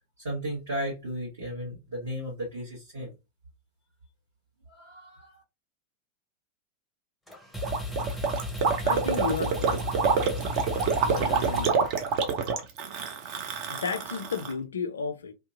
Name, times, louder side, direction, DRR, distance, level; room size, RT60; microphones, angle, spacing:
voice 1, 0.2-3.1 4.8-5.3, equal, 65° right, 1.5 m, -35 dB
sound 1, 7.3-12.4, left 2 dB, ahead, 0.7 m, -35 dB
Gurgling, 7.6-14.5, right 5 dB, 45° right, 0.5 m, -27 dB
voice 2, 8.8-9.8 11.0-11.8 13.7-15.3, left 5 dB, 70° left, 0.3 m, -33 dB
2.7 x 2.4 x 2.4 m
figure-of-eight pair, 90°, 0 cm